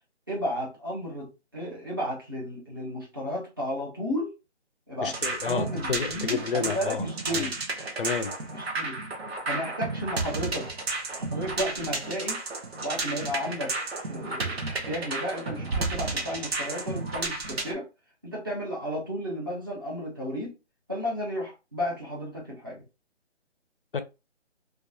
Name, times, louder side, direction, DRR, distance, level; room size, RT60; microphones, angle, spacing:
voice 1, 0.3-4.3 4.9-5.1 5.5-7.6 8.5-9.0 9.5-10.7 11.1-12.4 12.8-13.7 14.0-17.9 18.2-20.5 20.9-22.8, equal, 20° right, 0.6 m, -33 dB
voice 2, 5.0-7.5 8.0-8.3 23.9-24.0, left 5 dB, 50° left, 0.4 m, -30 dB
sound 1, 5.0-17.7, right 3 dB, 60° right, 0.8 m, -32 dB
2.6 x 2.2 x 2.3 m
hypercardioid pair, 170°, 35 cm